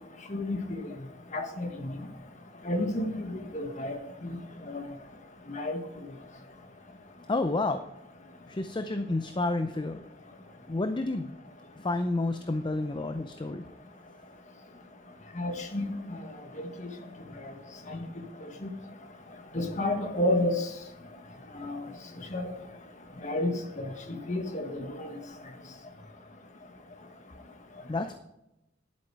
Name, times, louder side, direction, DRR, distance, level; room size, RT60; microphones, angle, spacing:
voice 1, 1.3-2.0 2.6-4.4 4.7-4.8 5.5-5.8 15.4-16.2 17.9-18.0 18.6-18.7 19.5-20.6 21.6-21.8 22.3-22.5 23.2-23.9 24.3-24.9, left 1 dB, 40° left, 5 dB, 1.5 m, -30 dB
voice 2, 7.3-7.8 8.5-10.0 10.7-11.4 11.8-13.6 27.9-28.1, left 2 dB, 25° left, 9 dB, 0.5 m, -30 dB
11.0 x 8.6 x 4.7 m, 0.89 s
head